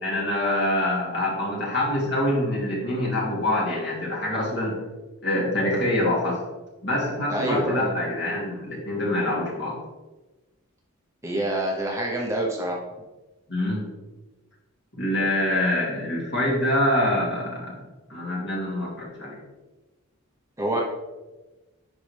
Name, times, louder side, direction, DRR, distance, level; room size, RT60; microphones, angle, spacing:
voice 1, 0.0-4.8 5.2-6.4 6.8-9.8 13.5-13.9 14.9-17.8 18.1-19.4, left 1 dB, 50° left, -5 dB, 2.8 m, -25 dB
voice 2, 7.3-7.9 11.2-12.8 20.6-20.8, right 1 dB, 15° right, -2 dB, 0.9 m, -26 dB
11.0 x 4.8 x 3.4 m, 1.1 s
head